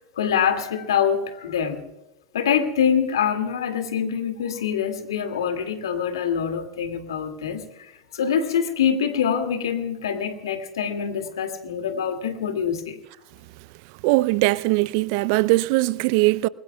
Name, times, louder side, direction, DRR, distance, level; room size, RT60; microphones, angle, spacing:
voice 1, 0.2-1.8 2.3-13.0, left 8 dB, 75° left, 2.3 m, -25 dB
voice 2, 14.0-16.5, right 21 dB, 55° right, 0.5 m, -20 dB
28.0 x 21.5 x 2.3 m
figure-of-eight pair, 85°, 2 cm